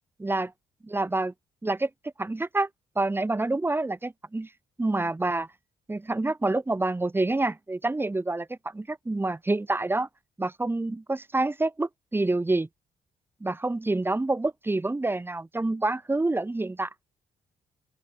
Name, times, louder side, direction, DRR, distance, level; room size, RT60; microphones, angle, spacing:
voice 1, 0.2-0.5 0.8-1.3 1.6-1.9 2.2-2.7 3.0-4.5 4.8-5.5 5.9-10.1 10.4-12.7 13.4-16.9, right 2 dB, 10° right, 0.5 m, -27 dB
open air
hypercardioid pair, 45°, 21 cm